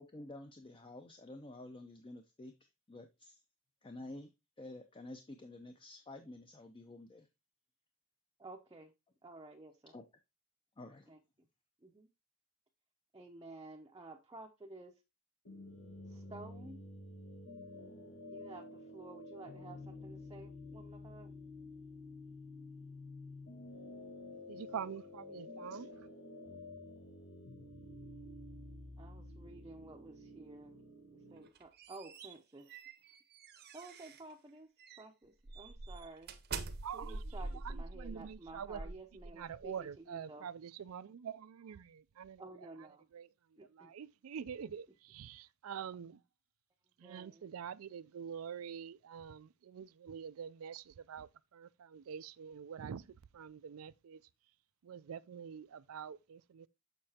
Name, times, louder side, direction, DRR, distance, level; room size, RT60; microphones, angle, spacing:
voice 1, 0.0-3.4 3.8-4.3 4.6-7.3 9.9-10.0 10.8-11.1, left 2 dB, 25° left, 0.6 m, -50 dB
voice 2, 8.4-8.9 9.2-9.9 11.1-11.2 11.8-12.1 13.1-15.0 16.1-16.8 18.3-21.3 29.0-30.8 31.3-32.8 33.7-34.7 35.0-36.3 36.9-40.5 42.4-43.0 43.6-43.9 44.4-44.7 47.0-47.5, right 2 dB, 20° right, 0.6 m, -52 dB
sound 1, 15.4-31.5, left 2 dB, 75° left, 1.5 m, -50 dB
voice 3, 24.5-25.9 36.8-37.2 37.6-38.8 39.3-42.4 43.1-43.3 43.7-46.2 47.0-53.0 53.3-54.2 54.8-56.7, right 7 dB, 90° right, 0.4 m, -46 dB
sound 2, 31.4-34.3 34.8-35.0 35.5-39.7, right 3 dB, 50° right, 0.8 m, -45 dB
6.7 x 6.3 x 2.8 m
head